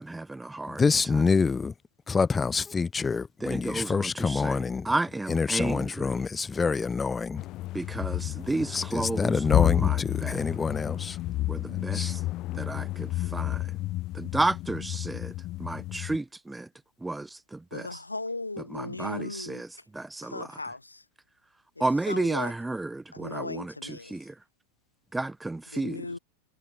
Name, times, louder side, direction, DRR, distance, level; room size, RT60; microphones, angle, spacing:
voice 1, 0.0-0.8 1.1-1.2 3.4-6.1 7.7-10.5 11.5-12.2 12.5-13.8 14.1-16.7 17.0-18.0 18.7-20.6 21.8-24.4 25.1-26.2, right 2 dB, 5° right, 1.6 m, -32 dB
voice 2, 0.7-1.7 2.1-4.9 5.3-7.4 8.7-11.2 11.7-12.2, left 5 dB, 15° left, 1.4 m, -27 dB
sound 1, 7.4-16.2, left 17 dB, 35° left, 4.2 m, -31 dB
voice 3, 17.7-19.6 20.2-21.0 21.8-22.5 23.1-24.2 25.7-26.2, left 2 dB, 80° left, 2.7 m, -37 dB
figure-of-eight pair, 90°, 0 cm